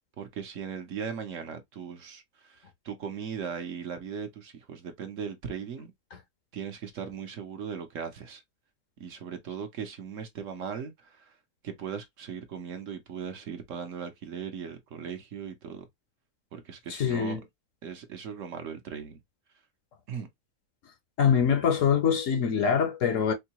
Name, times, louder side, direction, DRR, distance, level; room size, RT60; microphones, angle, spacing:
voice 1, 0.2-5.9 6.5-8.4 9.0-11.3 11.6-15.9 16.5-17.4 17.8-19.2 20.1-20.3, right 7 dB, 60° right, 1.1 m, -38 dB
voice 2, 16.9-17.4 21.2-23.3, left 7 dB, 65° left, 1.0 m, -24 dB
4.5 x 2.2 x 2.8 m
omnidirectional pair, 1.6 m